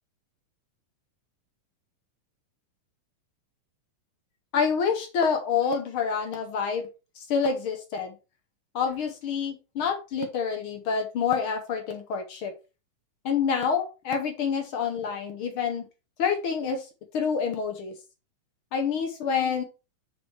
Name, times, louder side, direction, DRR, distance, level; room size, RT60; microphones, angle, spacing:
voice 1, 4.5-6.9 7.2-8.1 8.7-12.5 13.2-15.9 16.2-16.9 17.1-17.9 18.7-19.6, left 6 dB, 65° left, 5 dB, 1.3 m, -27 dB
6.4 x 5.0 x 4.6 m, 0.29 s
omnidirectional pair, 3.7 m